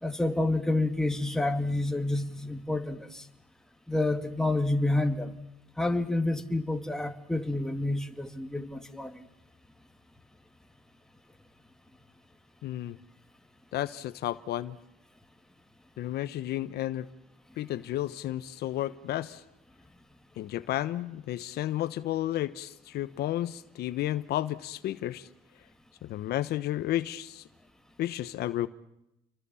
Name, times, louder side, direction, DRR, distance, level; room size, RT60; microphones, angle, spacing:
voice 1, 0.0-3.2 3.9-5.3 5.8-9.2, left 2 dB, 5° left, 2.3 m, -29 dB
voice 2, 12.6-13.0 13.7-14.8 16.0-17.1 17.6-19.4 20.4-25.3 26.0-27.4 28.0-28.7, left 13 dB, 70° left, 1.2 m, -32 dB
29.5 x 24.0 x 7.2 m
cardioid pair, 110°, 17 cm